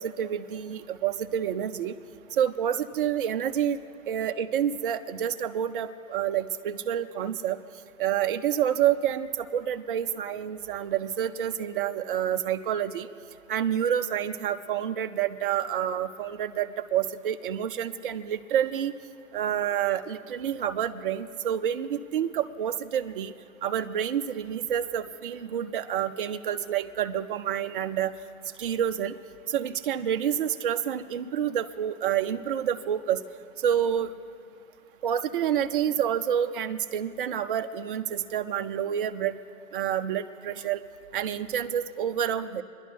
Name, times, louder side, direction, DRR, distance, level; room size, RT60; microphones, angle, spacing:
voice 1, 0.0-1.9 2.3-3.8 4.1-7.6 8.0-13.1 13.5-18.9 19.3-23.3 23.6-28.1 28.6-29.1 29.5-33.2 33.6-34.1 35.0-39.4 39.7-40.8 41.1-42.6, right 9 dB, 40° right, 9 dB, 0.5 m, -28 dB
26.0 x 11.0 x 3.4 m, 2.5 s
figure-of-eight pair, 130°, 42 cm